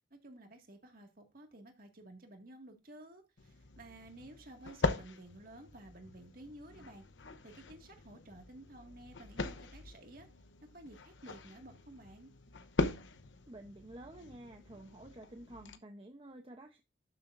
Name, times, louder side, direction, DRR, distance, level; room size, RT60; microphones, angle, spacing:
voice 1, 0.1-7.0 7.4-10.3 10.7-12.3, right 1 dB, 50° right, 2.0 m, -53 dB
sound 1, 3.4-15.8, left 3 dB, 85° left, 0.9 m, -41 dB
voice 2, 13.5-16.8, right 1 dB, 30° right, 0.8 m, -51 dB
12.5 x 6.9 x 2.6 m
head